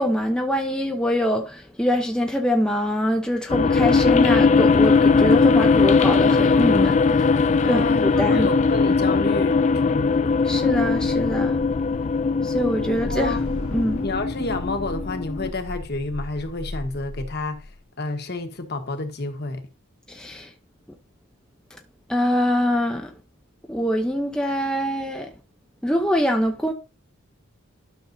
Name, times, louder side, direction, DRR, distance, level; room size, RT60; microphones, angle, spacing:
voice 1, 0.0-7.3 7.6-8.5 10.4-11.6 12.4-13.4 13.7-14.0 20.1-20.5 21.7-21.8 22.1-23.1 23.7-25.3 25.8-26.7, equal, 5° left, 0.7 m, -24 dB
sound 1, 3.5-15.5, left 4 dB, 35° left, 0.3 m, -19 dB
voice 2, 7.6-10.4 13.1-13.4 14.0-17.7 18.0-19.6, left 2 dB, 50° left, 1.3 m, -29 dB
sound 2, 10.8-17.7, left 1 dB, 85° left, 1.8 m, -37 dB
12.0 x 6.4 x 2.7 m
head